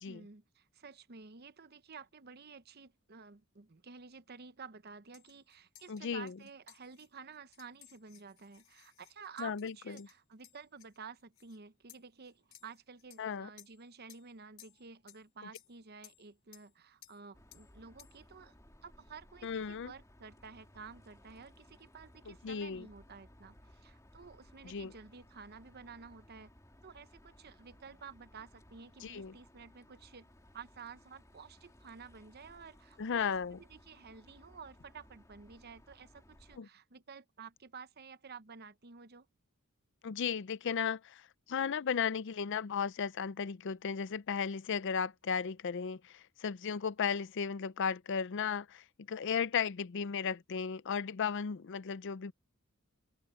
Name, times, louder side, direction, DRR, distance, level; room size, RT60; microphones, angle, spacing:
voice 1, 0.0-18.5 18.8-26.5 26.8-30.3 30.5-39.3, right 5 dB, 50° right, 0.9 m, -52 dB
sound 1, 5.1-11.6 11.9-13.3 13.6-13.8 14.1-14.3 14.6-15.2 15.5-15.8 16.0-16.3 16.5-16.7 17.0-17.2 17.5-17.7 18.0-18.2, left 13 dB, 80° left, 5.1 m, -60 dB
voice 2, 5.9-6.3 9.4-10.1 13.2-13.5 19.4-19.9 22.3-22.9 24.6-24.9 29.0-29.3 33.0-33.6 36.6-36.7 40.0-52.3, left 6 dB, 60° left, 0.5 m, -35 dB
sound 2, 17.3-36.6, left 1 dB, 15° left, 3.0 m, -61 dB
open air
head